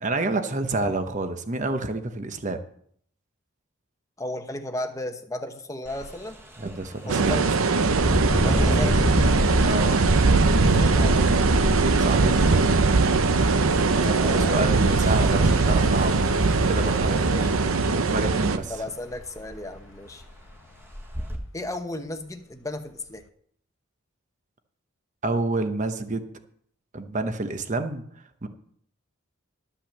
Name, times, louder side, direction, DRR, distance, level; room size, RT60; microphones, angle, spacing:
voice 1, 0.0-2.6 6.6-7.5 9.6-10.0 12.0-12.4 14.0-16.2 16.7-17.3 17.9-18.7 25.2-26.3 26.9-28.0 28.4-28.5, right 2 dB, 35° right, 8 dB, 1.0 m, -28 dB
voice 2, 4.2-6.4 7.1-7.6 8.4-9.4 10.8-11.3 13.9-15.2 17.1-17.8 18.7-20.2 21.5-23.2, left 1 dB, 15° left, 7 dB, 0.9 m, -35 dB
Engine, 5.9-6.1 6.5-6.7 7.9-13.7 14.6-14.7 15.1-15.9 17.6-17.8 18.1-18.2 18.7-18.8 19.1-19.6 20.2-20.3 20.9-21.4, equal, 10° right, 1.5 m, -26 dB
sound 1, 7.1-18.6, right 4 dB, 80° right, 0.7 m, -21 dB
Motor vehicle (road), 8.3-22.3 22.8-23.3, left 4 dB, 65° left, 0.5 m, -38 dB
12.0 x 5.7 x 7.3 m, 0.63 s
head